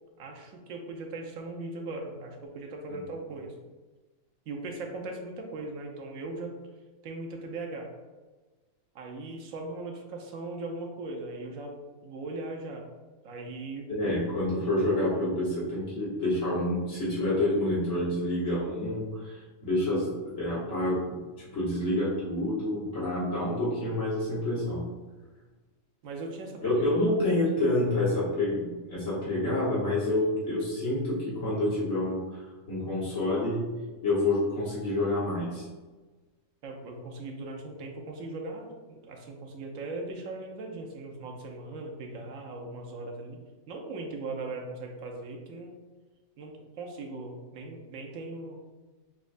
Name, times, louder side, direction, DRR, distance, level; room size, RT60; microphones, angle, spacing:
voice 1, 0.2-3.5 4.5-6.6 7.0-7.9 8.9-11.8 12.0-12.9 13.2-13.9 26.0-26.8 36.6-43.4 43.7-45.8 46.4-48.6, right 2 dB, 90° right, 1 dB, 1.1 m, -39 dB
voice 2, 13.9-20.1 20.4-24.9 26.6-32.4 32.7-33.7 34.0-35.6, left 1 dB, 75° left, -9 dB, 1.6 m, -28 dB
6.0 x 2.1 x 2.5 m, 1.2 s
omnidirectional pair, 1.4 m